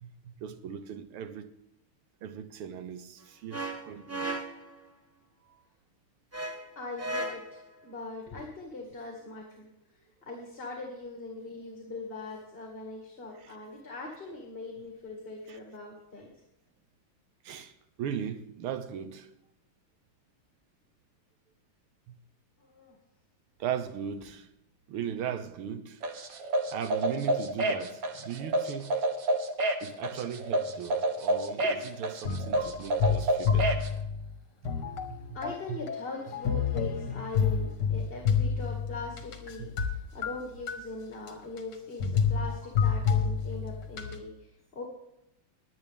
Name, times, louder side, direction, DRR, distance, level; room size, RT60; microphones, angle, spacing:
voice 1, 0.0-1.6 2.2-4.4 5.5-5.6 13.4-13.6 15.5-15.6 17.4-19.3 22.1-22.2 23.6-24.5 24.9-26.0 26.4-29.0 29.8-33.8 34.6-35.4 35.7-35.8 39.6-39.7, right 8 dB, 90° right, 1.9 m, -38 dB
sound 1, 3.5-4.8 6.3-7.6, right 2 dB, 20° right, 0.4 m, -36 dB
voice 2, 6.8-9.7 9.9-16.3 22.6-23.0 31.6-31.9 34.9-35.0 35.3-44.8, left 3 dB, 25° left, 2.3 m, -41 dB
sound 2, 26.0-33.9, right 1 dB, 50° right, 1.3 m, -29 dB
sound 3, 32.3-34.3 34.7-39.9 40.2-40.8 41.3-41.4 41.6-41.7 42.0-44.2, left 6 dB, 55° left, 2.0 m, -29 dB
21.5 x 8.8 x 3.5 m
omnidirectional pair, 2.4 m